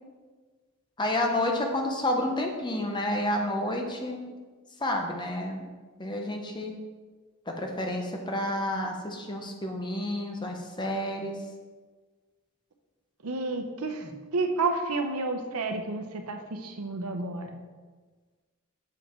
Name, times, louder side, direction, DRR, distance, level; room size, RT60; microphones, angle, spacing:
voice 1, 1.0-4.3 4.8-5.7 6.0-6.8 7.5-11.4, left 1 dB, 20° left, 2 dB, 0.8 m, -30 dB
voice 2, 13.2-17.6, right 3 dB, 80° right, 5 dB, 0.8 m, -31 dB
7.2 x 5.4 x 4.4 m, 1.4 s
head